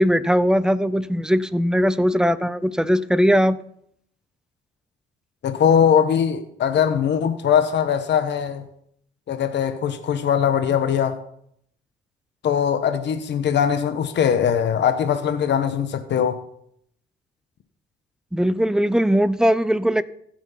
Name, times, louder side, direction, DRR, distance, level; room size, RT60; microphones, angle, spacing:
voice 1, 0.0-3.6 18.3-20.0, equal, 5° right, 0.6 m, -19 dB
voice 2, 5.4-8.6 9.3-11.2 12.4-16.4, left 8 dB, 60° left, 1.1 m, -21 dB
15.5 x 6.1 x 5.7 m
cardioid pair, 90°, 20 cm